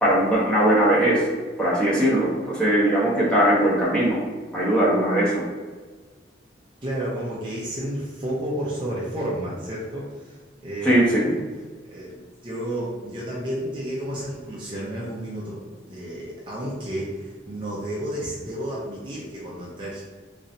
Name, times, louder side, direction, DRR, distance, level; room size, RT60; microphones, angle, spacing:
voice 1, 0.0-1.2 1.6-4.2 4.5-5.4 10.8-11.2, right 1 dB, 5° left, -8 dB, 1.1 m, -20 dB
voice 2, 6.8-11.1 11.9-15.6 15.9-20.0, right 1 dB, 25° right, -6 dB, 0.6 m, -31 dB
3.9 x 3.2 x 2.7 m, 1.4 s
head